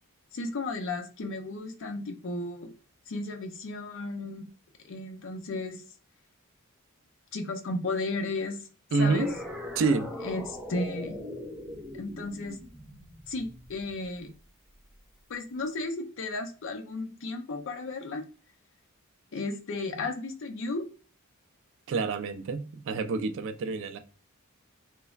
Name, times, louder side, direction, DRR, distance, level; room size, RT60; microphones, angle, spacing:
voice 1, 0.3-2.7 3.1-4.5 4.8-5.8 7.3-8.6 9.0-9.3 10.2-11.2 11.9-12.6 13.3-14.3 15.3-18.2 19.3-20.8, left 2 dB, 60° left, 0.5 m, -34 dB
voice 2, 8.9-9.3 9.8-10.1 21.9-24.0, right 4 dB, 60° right, 0.3 m, -27 dB
sound 1, 9.0-14.3, left 1 dB, ahead, 0.5 m, -40 dB
3.1 x 2.1 x 2.3 m
head